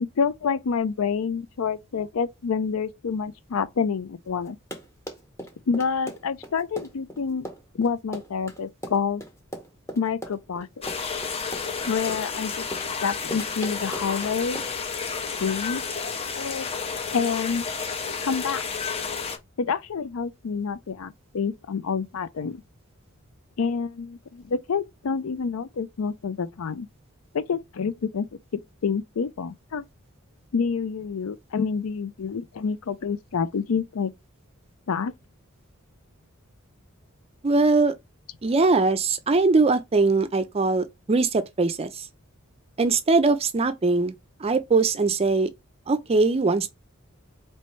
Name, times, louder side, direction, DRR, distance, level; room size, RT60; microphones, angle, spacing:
voice 1, 0.0-4.6 5.7-7.5 7.7-9.2 10.0-10.7 11.9-12.6 13.0-14.6 15.4-15.8 16.4-16.7 17.1-17.6 18.2-18.6 19.6-22.6 23.6-26.9 27.3-28.3 28.5-29.8 30.5-34.1 34.9-35.1, left 5 dB, 80° left, 0.5 m, -28 dB
Run, 4.5-14.9, equal, 15° left, 1.0 m, -39 dB
sound 1, 10.8-19.4, left 5 dB, 30° left, 0.6 m, -31 dB
voice 2, 37.4-37.9 38.4-42.0 42.8-44.1 44.4-45.5 45.9-46.7, right 3 dB, 30° right, 0.5 m, -21 dB
4.4 x 3.0 x 3.1 m
head